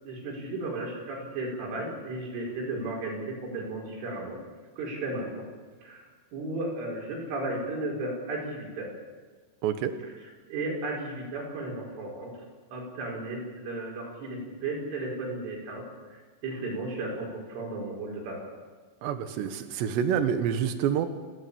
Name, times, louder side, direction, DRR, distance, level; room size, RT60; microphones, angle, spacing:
voice 1, 0.0-4.4 4.8-5.4 5.8-6.0 6.3-8.9 10.2-12.3 12.7-18.5, right 2 dB, 85° right, -2 dB, 7.9 m, -34 dB
voice 2, 9.6-9.9 19.0-21.1, right 8 dB, 70° right, 9 dB, 3.4 m, -27 dB
29.5 x 13.5 x 8.7 m, 1.4 s
omnidirectional pair, 5.5 m